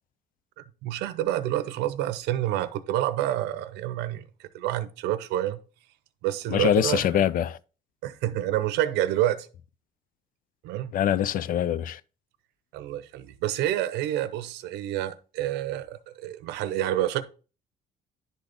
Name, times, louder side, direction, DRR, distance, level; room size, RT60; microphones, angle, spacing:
voice 1, 0.8-5.6 6.2-7.2 8.0-9.5 10.6-10.9 12.7-17.2, right 13 dB, 90° right, 0.7 m, -28 dB
voice 2, 6.5-7.6 10.9-12.0, left 10 dB, 55° left, 0.5 m, -24 dB
10.5 x 4.0 x 3.5 m
cardioid pair, 110°, 17 cm